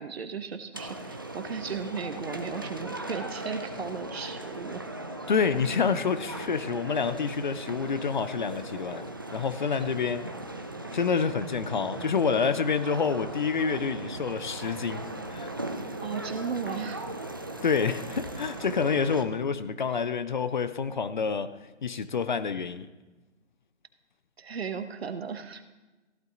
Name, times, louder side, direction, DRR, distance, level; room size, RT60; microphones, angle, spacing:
voice 1, 0.0-4.8 11.1-11.2 16.0-17.1 24.4-25.7, right 6 dB, 60° right, 1.2 m, -36 dB
sound 1, 0.7-19.2, right 1 dB, 20° right, 0.4 m, -38 dB
voice 2, 5.3-9.0 9.3-10.3 10.9-15.5 17.6-21.5 21.8-22.9, left 5 dB, 45° left, 0.6 m, -28 dB
15.0 x 12.0 x 3.8 m
figure-of-eight pair, 150°, 35 cm